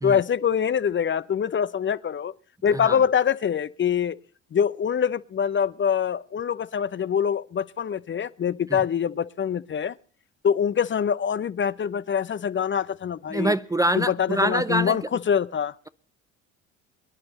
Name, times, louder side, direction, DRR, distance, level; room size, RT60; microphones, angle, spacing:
voice 1, 0.0-2.3 2.6-4.2 4.5-9.9 10.4-13.5 13.9-15.7, left 8 dB, 30° left, 0.7 m, -24 dB
voice 2, 13.3-15.0, right 1 dB, 10° right, 0.6 m, -24 dB
24.0 x 11.0 x 4.2 m
hypercardioid pair, 55°, 38 cm